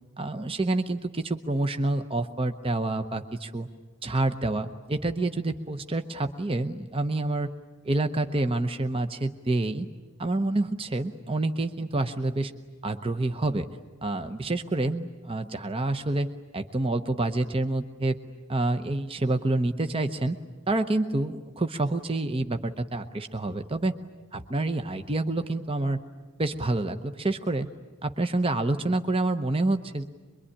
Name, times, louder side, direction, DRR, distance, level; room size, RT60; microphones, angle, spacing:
voice 1, 0.2-3.7 4.0-7.5 7.8-9.9 10.2-12.5 12.8-13.7 14.0-18.2 18.5-20.4 20.7-23.9 24.3-26.0 26.4-27.7 28.0-30.0, right 2 dB, 25° right, 8 dB, 0.8 m, -28 dB
24.0 x 23.0 x 9.9 m, 1.3 s
head